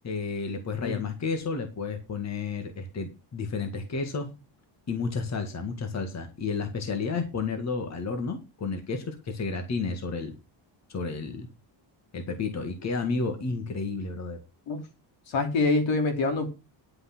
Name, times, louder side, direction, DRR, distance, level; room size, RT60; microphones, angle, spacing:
voice 1, 0.0-4.3 4.9-10.3 10.9-11.5 12.1-14.4, left 4 dB, 35° left, 6 dB, 2.0 m, -31 dB
voice 2, 15.3-16.5, left 3 dB, 70° left, 5 dB, 3.4 m, -25 dB
11.0 x 5.9 x 6.2 m, 0.28 s
cardioid pair, 150°, 46 cm